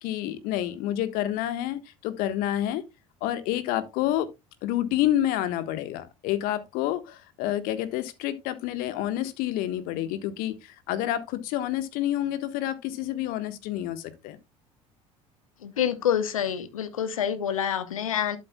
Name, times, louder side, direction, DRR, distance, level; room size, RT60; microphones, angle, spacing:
voice 1, 0.0-2.8 3.2-4.3 4.6-14.4, left 13 dB, 55° left, 1.3 m, -28 dB
voice 2, 15.6-18.4, left 9 dB, 75° left, 1.0 m, -27 dB
11.5 x 7.7 x 2.2 m
figure-of-eight pair, 65°, 18 cm